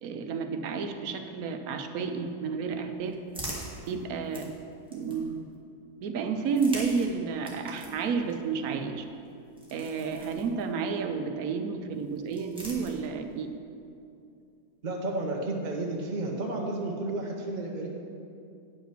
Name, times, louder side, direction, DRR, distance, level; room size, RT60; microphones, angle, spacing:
voice 1, 0.0-3.2 3.9-4.5 4.9-5.4 6.0-9.0 9.7-13.5, right 5 dB, 80° right, 7 dB, 1.2 m, -31 dB
sound 1, 2.5-5.5 6.4-11.0 11.9-13.4, right 1 dB, 5° right, 1.3 m, -45 dB
voice 2, 14.8-17.9, right 2 dB, 40° right, 0 dB, 0.8 m, -32 dB
9.1 x 5.9 x 5.8 m, 2.6 s
omnidirectional pair, 1.5 m